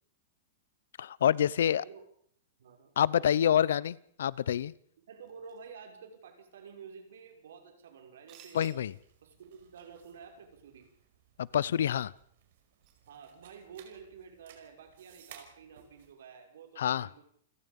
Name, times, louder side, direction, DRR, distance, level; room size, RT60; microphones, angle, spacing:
voice 1, 1.0-1.8 3.0-4.7 8.5-8.9 11.4-12.1 16.8-17.1, left 9 dB, 80° left, 22 dB, 0.8 m, -27 dB
voice 2, 1.6-2.0 2.6-3.3 5.1-8.8 9.2-10.9 13.1-17.2, right 6 dB, 80° right, 4 dB, 6.2 m, -50 dB
sound 1, 5.3-13.2, right 8 dB, 30° right, 3.8 m, -65 dB
sound 2, 8.8-16.1, right 9 dB, 50° right, 5.0 m, -59 dB
28.5 x 16.5 x 5.5 m, 0.64 s
supercardioid pair, 175°, 0 cm